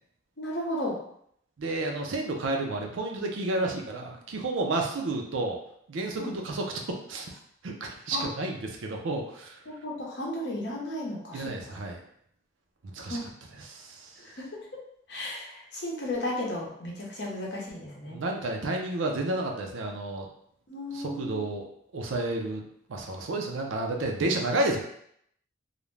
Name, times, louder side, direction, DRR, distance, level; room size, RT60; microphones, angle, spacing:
voice 1, 0.4-1.0 6.2-6.3 8.1-8.3 9.7-11.5 13.1-13.2 14.2-14.4 15.1-18.2 20.7-21.4, left 1 dB, 60° left, -3 dB, 0.7 m, -34 dB
voice 2, 1.6-5.6 5.9-7.3 7.6-9.6 11.3-12.0 12.9-14.1 18.1-20.3 20.9-21.7 21.9-22.6 22.9-24.8, right 2 dB, 80° right, 2 dB, 0.5 m, -31 dB
2.4 x 2.1 x 3.1 m, 0.70 s
head